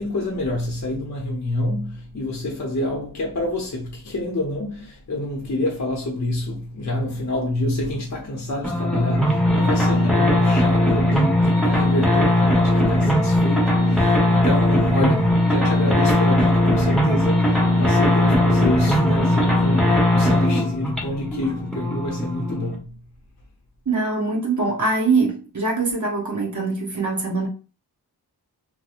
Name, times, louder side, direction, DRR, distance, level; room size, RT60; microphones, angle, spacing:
voice 1, 0.0-23.0, left 1 dB, 40° left, 0.8 m, -27 dB
sound 1, 8.6-22.7, left 1 dB, ahead, 1.0 m, -19 dB
voice 2, 23.9-27.5, right 3 dB, 45° right, 0.9 m, -23 dB
2.6 x 2.1 x 2.5 m
cardioid pair, 40°, 42 cm